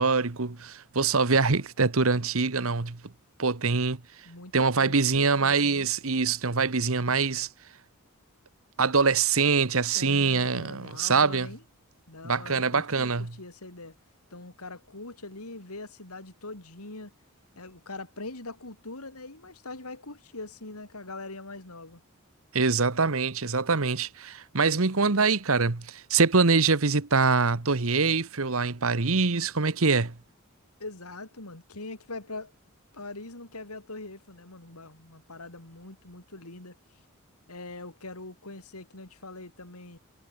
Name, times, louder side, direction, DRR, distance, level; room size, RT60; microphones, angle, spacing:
voice 1, 0.0-3.0 3.4-4.0 4.5-7.5 8.8-11.5 12.2-13.3 22.5-30.1, right 4 dB, 70° right, 1.3 m, -24 dB
voice 2, 4.2-5.9 9.9-11.6 12.1-14.0 14.3-17.1 17.6-22.0 30.8-32.5 32.9-36.8 37.5-40.0, left 2 dB, 90° left, 4.4 m, -42 dB
head